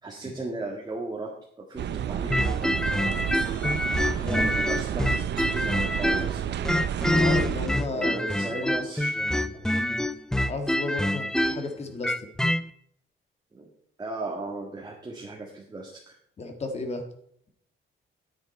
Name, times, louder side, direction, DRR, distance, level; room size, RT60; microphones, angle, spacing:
voice 1, 0.0-1.3 1.6-2.9 4.2-6.6 7.9-9.1 13.5-13.7 14.0-16.1, right 2 dB, 20° right, -1 dB, 1.7 m, -36 dB
sound 1, 1.8-7.7, right 10 dB, 55° right, 0.6 m, -30 dB
sound 2, 2.3-6.4 6.7-12.6, left 1 dB, 5° left, 0.3 m, -26 dB
sound 3, 3.3-6.9, left 3 dB, 60° left, 4.4 m, -55 dB
voice 2, 7.1-8.7 9.1-10.0 10.5-12.1 16.4-17.0, left 3 dB, 30° left, 6 dB, 1.7 m, -34 dB
9.9 x 9.7 x 4.3 m, 0.69 s
cardioid pair, 160°, 21 cm